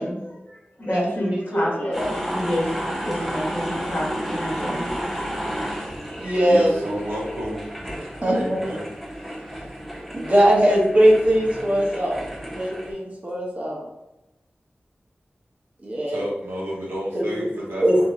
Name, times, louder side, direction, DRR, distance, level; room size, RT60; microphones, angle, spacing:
voice 1, 0.0-2.7 3.0-5.1 5.4-6.3, equal, 50° left, -4 dB, 1.1 m, -30 dB
voice 2, 0.8-2.1 6.2-6.7 8.2-8.6 10.1-13.9 15.8-16.2 17.1-17.5 17.8-18.1, equal, 35° right, -2 dB, 0.9 m, -21 dB
sound 1, 1.9-12.9, equal, ahead, 0.8 m, -32 dB
voice 3, 6.5-7.6 8.2-8.9 15.9-18.1, equal, 75° right, -4 dB, 0.9 m, -30 dB
2.8 x 2.7 x 2.7 m, 0.94 s
cardioid pair, 50°, 4 cm